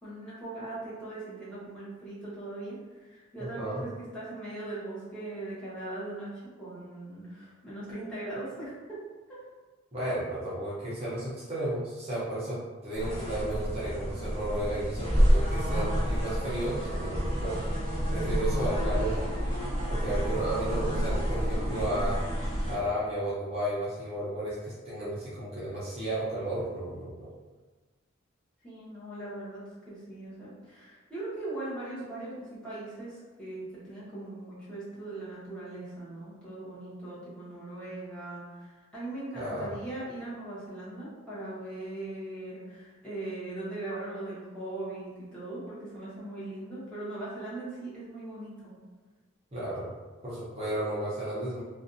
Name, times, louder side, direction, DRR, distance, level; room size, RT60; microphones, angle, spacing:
voice 1, 0.0-9.0 9.3-9.4 19.9-20.4 28.6-48.8, right 2 dB, 5° left, -11 dB, 0.9 m, -40 dB
voice 2, 3.4-3.8 9.9-17.6 18.1-19.2 19.9-22.2 22.7-27.3 39.3-39.8 49.5-49.9 50.2-51.6, right 1 dB, 30° right, -10 dB, 0.6 m, -33 dB
sound 1, 12.9-22.7, equal, 20° left, 1.2 m, -29 dB
2.5 x 2.3 x 2.5 m, 1.3 s
head